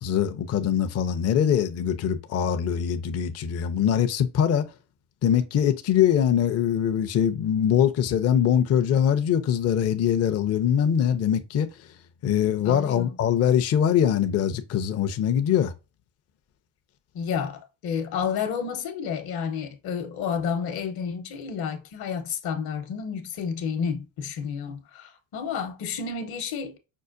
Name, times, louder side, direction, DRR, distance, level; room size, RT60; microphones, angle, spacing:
voice 1, 0.0-4.7 5.2-11.7 12.2-15.7, left 9 dB, 35° left, 0.5 m, -23 dB
voice 2, 12.6-13.2 17.1-26.8, left 6 dB, 55° left, 0.9 m, -30 dB
5.5 x 2.1 x 2.5 m
supercardioid pair, 90°, 44 cm